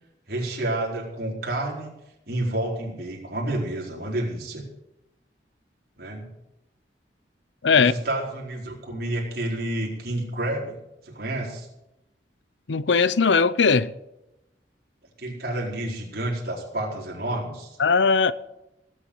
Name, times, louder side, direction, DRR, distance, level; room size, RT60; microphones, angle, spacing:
voice 1, 0.3-1.9 2.2-4.7 6.0-6.3 7.7-10.8 11.0-11.7 15.2-17.8, right 1 dB, 55° right, 4.5 m, -29 dB
voice 2, 12.7-13.9 17.8-18.3, left 5 dB, 80° left, 0.7 m, -19 dB
17.5 x 7.8 x 8.7 m
head